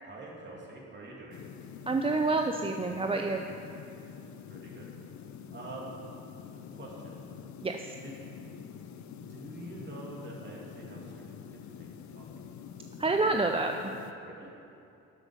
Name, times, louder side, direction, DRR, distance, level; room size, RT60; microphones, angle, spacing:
voice 1, 0.0-1.4 4.5-4.9 5.5-5.9 6.5-7.2 8.0-8.1 9.3-11.2 11.6-12.3 14.2-14.5, right 2 dB, 35° right, -3 dB, 2.8 m, -46 dB
sound 1, 1.3-14.1, left 7 dB, 70° left, 0.7 m, -46 dB
voice 2, 1.9-3.4 7.6-7.8 13.0-13.7, right 3 dB, 20° right, 4 dB, 0.5 m, -28 dB
13.0 x 8.0 x 5.1 m, 2.7 s
cardioid pair, 90°, 30 cm